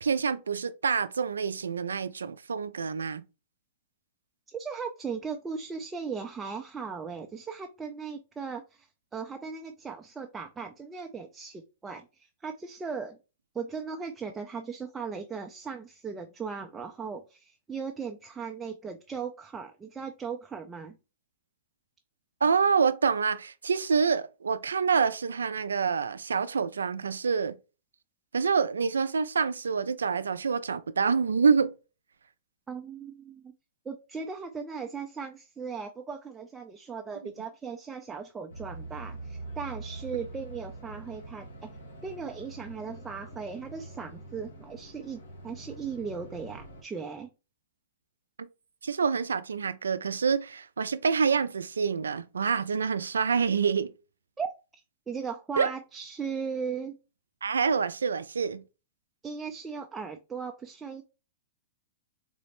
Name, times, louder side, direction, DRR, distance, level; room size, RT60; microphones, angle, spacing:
voice 1, 0.0-3.2 22.4-27.6 28.3-31.7 37.2-37.3 48.4-48.5 48.8-53.9 55.6-55.7 57.4-58.6, right 5 dB, 90° right, 0.3 m, -27 dB
voice 2, 4.5-13.2 13.5-21.0 32.7-33.5 33.9-41.7 42.0-47.3 54.4-54.8 55.1-57.0 59.2-61.0, right 5 dB, 15° right, 0.4 m, -38 dB
sound 1, 38.5-46.8, right 2 dB, 80° left, 1.4 m, -44 dB
3.9 x 2.0 x 2.9 m
hypercardioid pair, 120°, 0 cm